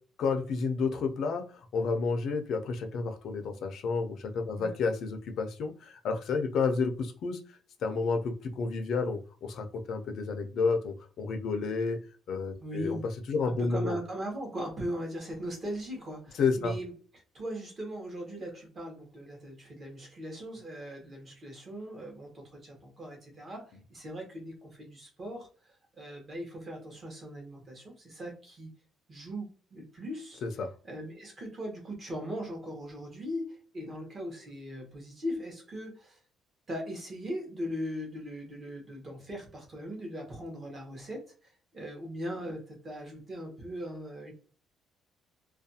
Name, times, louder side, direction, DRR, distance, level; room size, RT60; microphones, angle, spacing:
voice 1, 0.2-7.4 7.8-12.0 12.3-13.0 13.3-14.0 16.4-16.7 30.4-30.7, left 4 dB, 60° left, 5 dB, 0.5 m, -30 dB
voice 2, 12.6-13.0 13.4-28.7 29.1-30.4 30.8-36.2 36.7-44.3, equal, 30° right, 1 dB, 0.9 m, -39 dB
2.4 x 2.2 x 2.6 m, 0.40 s
cardioid pair, 145°, 0 cm